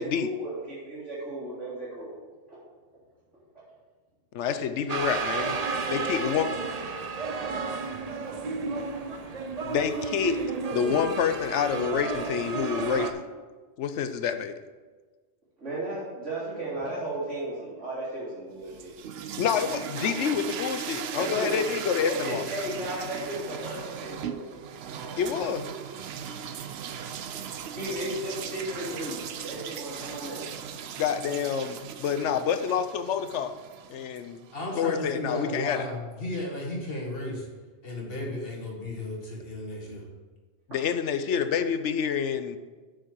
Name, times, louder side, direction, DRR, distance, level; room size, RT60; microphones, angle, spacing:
voice 1, 0.0-2.2 2.5-2.6 15.6-19.0 21.1-21.6 22.0-25.2 27.7-30.5, right 1 dB, 85° right, -11 dB, 3.4 m, -35 dB
voice 2, 4.3-5.6 5.9-6.5 9.6-10.4 10.7-13.2 13.8-14.6 19.4-22.4 25.2-25.6 31.0-33.5 33.9-34.4 34.7-35.9 40.7-42.6, left 7 dB, 80° left, 10 dB, 1.0 m, -28 dB
sound 1, 4.9-13.1, right 4 dB, 40° right, 0.6 m, -32 dB
sound 2, 18.6-34.6, right 8 dB, 65° right, 0.8 m, -38 dB
voice 3, 34.5-37.5 37.8-40.1, left 1 dB, 55° left, -2 dB, 2.0 m, -34 dB
7.5 x 6.4 x 6.2 m, 1.3 s
omnidirectional pair, 1.2 m